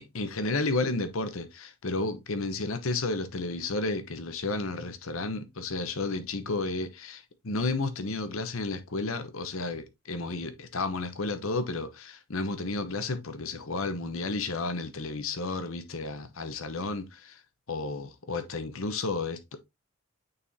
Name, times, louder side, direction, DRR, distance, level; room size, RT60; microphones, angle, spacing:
voice 1, 0.0-17.4 17.7-19.4, left 3 dB, 65° left, 0.9 m, -32 dB
8.9 x 4.1 x 2.7 m
head